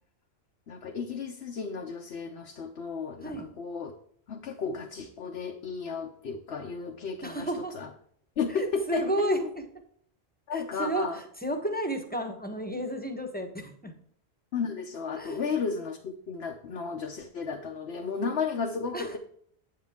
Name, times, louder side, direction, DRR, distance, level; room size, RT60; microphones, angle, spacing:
voice 1, 0.7-3.9 4.3-7.5 7.7-7.9 8.4-9.5 10.5-11.2 14.5-19.2, left 5 dB, 80° left, 2 dB, 1.1 m, -33 dB
voice 2, 7.2-7.8 8.5-9.7 10.5-13.9 15.2-15.4 18.9-19.2, right 1 dB, 10° left, 5 dB, 1.1 m, -32 dB
8.6 x 7.8 x 3.6 m, 0.63 s
omnidirectional pair, 1.1 m